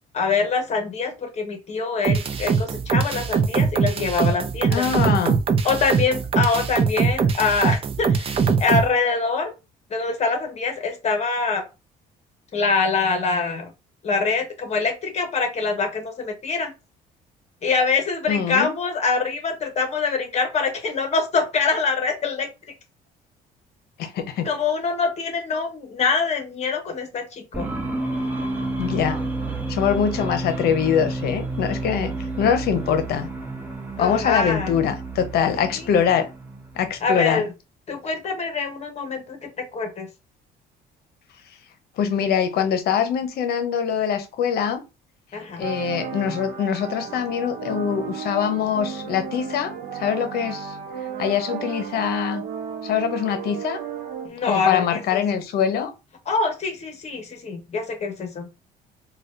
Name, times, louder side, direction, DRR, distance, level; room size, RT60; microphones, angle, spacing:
voice 1, 0.1-4.8 5.6-9.5 9.9-11.6 12.5-13.7 14.0-16.7 17.6-22.5 24.4-27.7 34.0-34.7 35.7-35.8 37.0-37.5 37.9-40.1 45.3-45.7 54.2-55.2 56.3-58.5, left 4 dB, 40° left, 1.1 m, -24 dB
sound 1, 2.0-8.9, right 5 dB, 35° right, 0.5 m, -22 dB
voice 2, 4.7-5.4 18.3-18.7 24.0-24.5 28.8-29.2 29.7-33.3 34.0-36.3 36.8-37.4 42.0-44.8 45.6-50.7 51.2-52.4 52.8-53.8 54.4-55.9, left 8 dB, 70° left, 0.8 m, -23 dB
sound 2, 27.5-37.1, right 2 dB, 10° right, 0.9 m, -30 dB
sound 3, 45.6-54.3, right 7 dB, 70° right, 0.7 m, -34 dB
4.1 x 2.3 x 2.5 m
cardioid pair, 110°, 17 cm